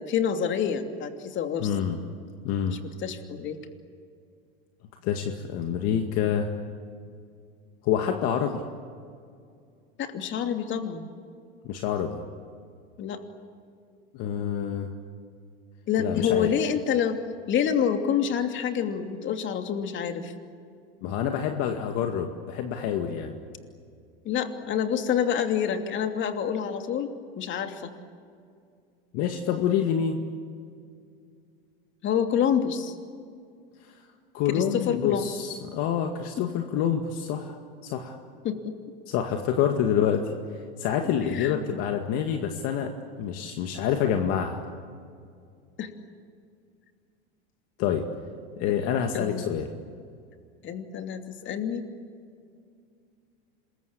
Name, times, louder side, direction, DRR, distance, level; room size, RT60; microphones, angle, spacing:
voice 1, 0.0-1.7 2.7-3.6 10.0-11.1 13.0-13.2 15.9-17.2 17.5-20.3 24.2-27.9 32.0-32.9 34.5-35.3 38.4-38.7 41.0-41.6 45.8-45.9 48.6-48.8 49.1-49.5 50.6-51.9, left 8 dB, 40° left, 6 dB, 2.8 m, -27 dB
voice 2, 1.6-2.0 2.4-2.8 5.0-6.5 7.8-8.6 11.6-12.2 14.1-14.9 16.0-16.5 21.0-23.4 29.1-30.2 34.3-37.6 37.8-38.2 39.1-40.3 40.8-44.6 47.8-48.1 48.6-49.7, left 8 dB, 55° left, 4 dB, 2.1 m, -27 dB
26.5 x 22.0 x 8.7 m, 2.3 s
supercardioid pair, 110°, 29 cm